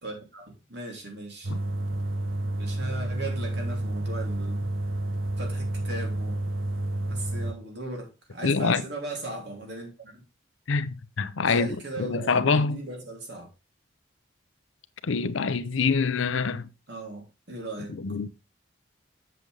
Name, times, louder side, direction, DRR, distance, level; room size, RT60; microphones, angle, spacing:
voice 1, 0.0-1.5 2.6-4.7 5.4-6.5 7.1-10.2 11.4-13.5 16.9-18.0, right 2 dB, 55° right, 3.1 m, -37 dB
sound 1, 1.4-7.5, right 1 dB, 85° right, 1.0 m, -30 dB
voice 2, 8.4-8.8 10.7-11.7 12.0-12.8 15.0-16.7 17.9-18.3, left 4 dB, 80° left, 0.7 m, -25 dB
7.7 x 7.6 x 3.4 m
head